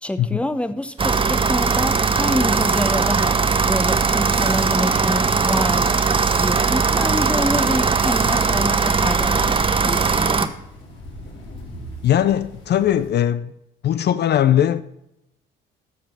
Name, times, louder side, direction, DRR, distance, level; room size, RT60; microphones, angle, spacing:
voice 1, 0.0-3.4 3.6-10.5, left 1 dB, 5° left, 11 dB, 0.8 m, -27 dB
sound 1, 0.8-13.1, equal, 75° left, 3.5 m, -44 dB
sound 2, 1.0-10.5, right 5 dB, 25° right, 0.8 m, -19 dB
voice 2, 12.0-13.5 13.8-14.8, left 11 dB, 55° left, 14 dB, 0.5 m, -19 dB
13.5 x 5.1 x 5.3 m, 0.84 s
cardioid pair, 90°, 20 cm